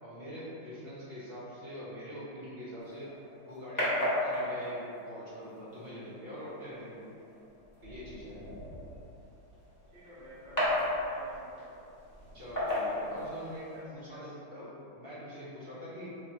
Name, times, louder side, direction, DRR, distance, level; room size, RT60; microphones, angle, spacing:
voice 1, 0.0-3.1 3.5-7.1 7.8-8.4 12.3-16.1, equal, 45° right, -9 dB, 0.8 m, -44 dB
sound 1, 2.8-13.8, left 1 dB, 10° left, 1.1 m, -36 dB
voice 2, 9.9-11.7 13.7-14.3, equal, 80° right, -12 dB, 1.8 m, -52 dB
3.8 x 2.9 x 4.4 m, 2.7 s
omnidirectional pair, 2.1 m